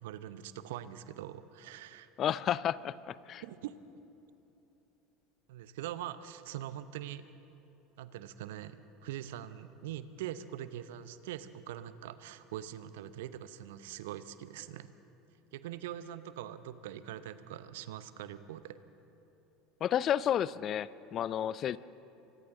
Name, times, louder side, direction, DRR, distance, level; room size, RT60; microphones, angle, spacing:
voice 1, 0.0-2.1 3.4-3.8 5.5-7.3 8.0-14.9 15.5-18.8, right 11 dB, 65° right, 13 dB, 0.8 m, -43 dB
voice 2, 2.2-3.4 19.8-21.8, left 10 dB, 40° left, 19 dB, 0.5 m, -31 dB
29.0 x 25.0 x 3.8 m, 3.0 s
figure-of-eight pair, 70°, 0 cm